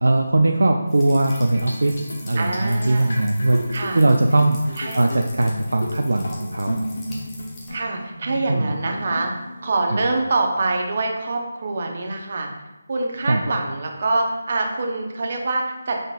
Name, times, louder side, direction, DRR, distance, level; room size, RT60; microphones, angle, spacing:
voice 1, 0.0-3.6 3.9-6.8 8.5-8.7 13.3-13.4, right 2 dB, 75° right, 3 dB, 0.3 m, -20 dB
sound 1, 0.9-7.7, left 1 dB, 15° left, 0.8 m, -45 dB
sound 2, 1.3-10.7, left 1 dB, 60° left, 1.0 m, -34 dB
voice 2, 2.3-3.2 3.7-4.0 4.8-5.0 7.7-9.3 9.6-12.5 12.9-16.1, right 2 dB, 45° right, 2 dB, 0.7 m, -25 dB
5.1 x 3.9 x 2.4 m, 1.0 s
figure-of-eight pair, 155°, 0 cm